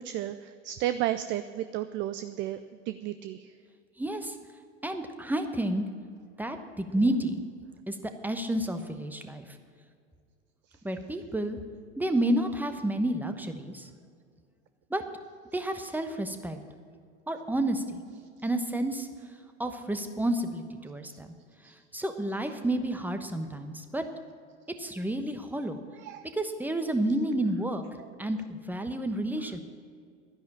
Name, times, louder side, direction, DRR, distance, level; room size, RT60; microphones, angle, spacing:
voice 1, 0.0-2.6 2.9-3.5 10.7-10.8 21.1-21.2 21.6-21.8 25.9-26.3, right 13 dB, 30° right, 12 dB, 0.5 m, -33 dB
voice 2, 4.0-4.4 4.8-5.9 6.4-7.4 7.9-9.6 10.8-11.6 12.0-13.9 14.9-15.0 15.5-16.6 17.3-18.0 18.4-19.1 19.6-21.3 21.9-24.0 24.8-25.8 26.3-27.8 28.2-29.6, right 1 dB, 5° right, 7 dB, 1.0 m, -30 dB
12.0 x 10.5 x 7.3 m, 2.2 s
figure-of-eight pair, 80°, 38 cm